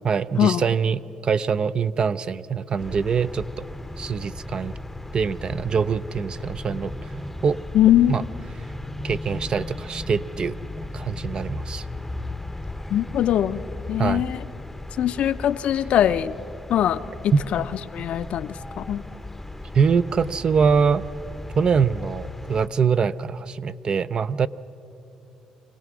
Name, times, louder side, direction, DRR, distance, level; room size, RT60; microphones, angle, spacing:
voice 1, 0.0-3.7 4.0-4.7 5.1-6.9 7.4-7.6 8.1-8.2 9.0-10.6 10.9-11.9 14.0-14.3 17.3-17.4 19.7-21.0 21.5-24.5, right 6 dB, 45° right, 14 dB, 0.5 m, -23 dB
sound 1, 2.8-22.7, left 2 dB, 10° left, 0.7 m, -36 dB
voice 2, 7.7-8.2 12.9-13.6 13.9-14.4 15.0-16.4 16.7-17.7 17.9-19.1, left 11 dB, 70° left, 12 dB, 0.6 m, -22 dB
25.0 x 17.5 x 6.1 m, 2.8 s
cardioid pair, 80°, 2 cm